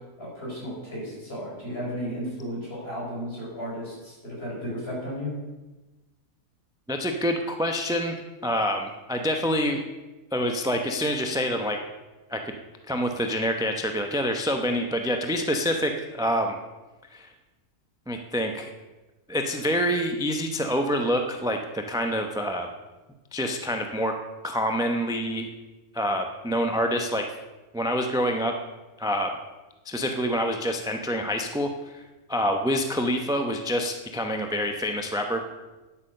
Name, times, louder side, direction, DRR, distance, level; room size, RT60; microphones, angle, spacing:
voice 1, 0.2-5.3, equal, 40° left, -4 dB, 4.7 m, -34 dB
voice 2, 6.9-9.8 10.3-11.8 12.3-12.5 12.9-16.6 17.1-17.3 18.1-18.7 19.3-22.7 23.3-24.1 24.4-25.5 25.9-27.2 27.7-28.5 29.0-29.3 29.9-32.0 32.3-35.4, equal, 5° right, 5 dB, 0.5 m, -26 dB
9.7 x 8.5 x 6.5 m, 1.1 s
omnidirectional pair, 1.5 m